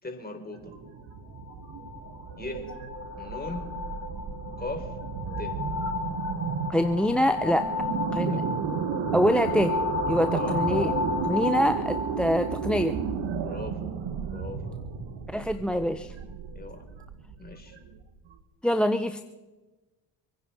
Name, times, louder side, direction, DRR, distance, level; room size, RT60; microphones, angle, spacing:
voice 1, 0.0-0.7 2.4-2.7 3.2-3.7 4.6-4.9 5.4-5.5 8.2-8.4 10.3-10.6 13.4-13.9 14.3-14.7 16.6-16.8 17.4-17.8, left 2 dB, 20° left, 3 dB, 4.2 m, -38 dB
sound 1, 0.5-18.3, right 7 dB, 65° right, 1.6 m, -33 dB
sound 2, 1.4-13.0, left 4 dB, 40° left, 3.0 m, -34 dB
voice 2, 6.7-7.7 8.1-8.4 9.1-9.7 10.1-10.9 11.2-13.0 15.3-16.1 18.6-19.2, equal, ahead, 12 dB, 0.7 m, -25 dB
25.0 x 10.0 x 4.5 m, 1.2 s
hypercardioid pair, 55°, 48 cm